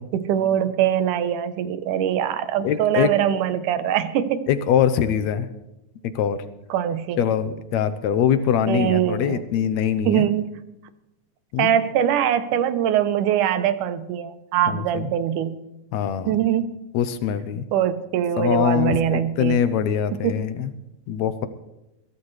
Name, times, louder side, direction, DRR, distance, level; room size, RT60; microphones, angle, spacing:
voice 1, 0.1-4.5 6.7-7.2 8.7-9.4 10.1-10.5 11.6-15.6 16.3-16.6 17.7-19.6 20.2-20.4, right 10 dB, 80° right, 12 dB, 2.4 m, -22 dB
voice 2, 2.6-3.1 4.5-5.5 6.2-6.4 7.2-10.3 11.5-11.7 14.7-15.1 15.9-16.3 16.9-17.6 18.4-20.7 21.1-21.5, left 9 dB, 75° left, 12 dB, 1.9 m, -23 dB
22.5 x 16.0 x 3.3 m, 0.94 s
omnidirectional pair, 3.6 m